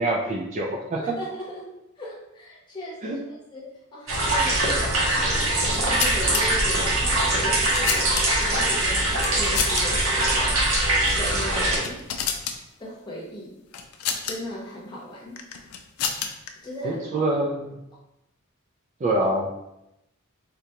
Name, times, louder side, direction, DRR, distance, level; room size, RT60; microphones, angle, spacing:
voice 1, 0.0-1.2 3.0-3.2 16.8-17.8 19.0-19.5, right 1 dB, 35° right, -1 dB, 0.3 m, -25 dB
voice 2, 0.9-3.7 3.9-4.8 5.3-8.1 8.4-10.6 11.2-12.0 12.8-13.6 14.3-15.4 16.6-17.2, equal, 20° left, -5 dB, 0.8 m, -37 dB
sound 1, 4.1-11.8, right 1 dB, 65° right, 0.7 m, -22 dB
sound 2, 5.6-6.4 7.3-8.5 9.2-9.8 10.1-10.3 11.0-11.2 11.6-12.6 13.7-14.4 15.4-16.5, left 7 dB, 90° left, 0.4 m, -29 dB
3.7 x 2.2 x 2.8 m, 0.87 s
head